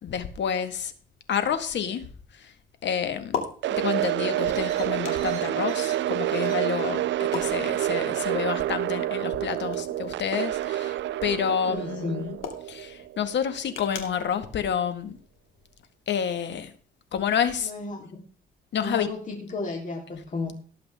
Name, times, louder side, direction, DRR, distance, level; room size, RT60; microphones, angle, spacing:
voice 1, 0.0-0.9 1.3-2.5 2.8-3.4 3.7-12.4 12.7-15.2 16.1-16.7 17.1-17.7 18.7-19.1, left 8 dB, 65° left, 1.8 m, -29 dB
sound 1, 0.6-15.8, left 6 dB, 85° left, 2.9 m, -43 dB
sound 2, 3.6-13.7, right 14 dB, 65° right, 0.5 m, -28 dB
sound 3, 4.2-10.9, right 4 dB, 35° right, 4.7 m, -51 dB
voice 2, 11.7-12.3 17.6-18.1 18.8-20.5, left 3 dB, 40° left, 3.6 m, -33 dB
18.5 x 7.7 x 3.6 m
cardioid pair, 90°, 20 cm